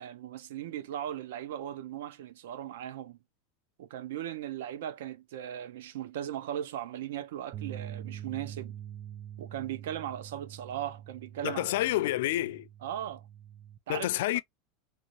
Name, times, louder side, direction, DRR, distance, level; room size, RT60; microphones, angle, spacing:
voice 1, 0.0-3.2 3.8-8.8 9.4-11.6 12.8-13.3 13.9-14.4, right 11 dB, 80° right, 0.5 m, -38 dB
sound 1, 7.5-13.8, right 10 dB, 25° right, 0.3 m, -44 dB
voice 2, 11.4-12.7 13.9-14.4, left 15 dB, 65° left, 0.3 m, -29 dB
3.0 x 2.7 x 2.9 m
supercardioid pair, 180°, 0 cm